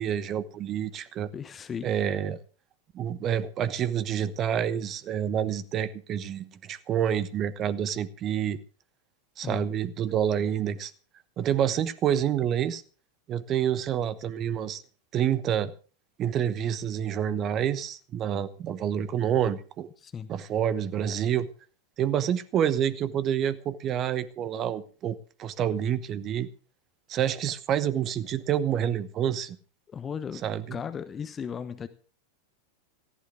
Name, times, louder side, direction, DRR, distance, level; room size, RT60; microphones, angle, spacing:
voice 1, 0.0-1.3 1.8-2.4 2.9-8.6 9.4-10.9 11.4-12.8 13.3-14.8 15.1-15.7 16.2-19.9 20.3-21.5 22.0-26.5 27.1-29.6 30.4-30.8, right 9 dB, 30° right, 17 dB, 1.0 m, -28 dB
voice 2, 1.3-1.9 9.4-9.7 20.0-20.3 29.9-30.4 30.7-31.9, left 7 dB, 20° left, 11 dB, 1.0 m, -36 dB
19.0 x 15.0 x 3.6 m, 0.38 s
figure-of-eight pair, 90°, 0 cm